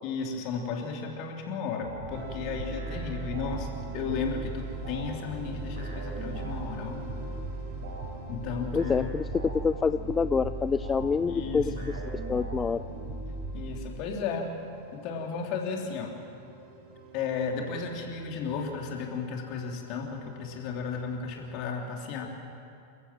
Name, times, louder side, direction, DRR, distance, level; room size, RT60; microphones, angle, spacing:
voice 1, 0.0-7.0 8.3-9.2 11.3-11.9 13.5-14.5 14.9-16.2 17.1-22.3, left 5 dB, 40° left, 1 dB, 3.3 m, -34 dB
sound 1, 1.8-14.0, right 3 dB, 60° right, 6.9 m, -37 dB
sound 2, 2.1-21.7, right 2 dB, 40° right, 3.1 m, -49 dB
voice 2, 8.7-11.7 12.3-12.8, left 5 dB, 15° left, 13 dB, 0.4 m, -27 dB
28.5 x 14.5 x 7.7 m, 2.5 s
figure-of-eight pair, 90°, 0 cm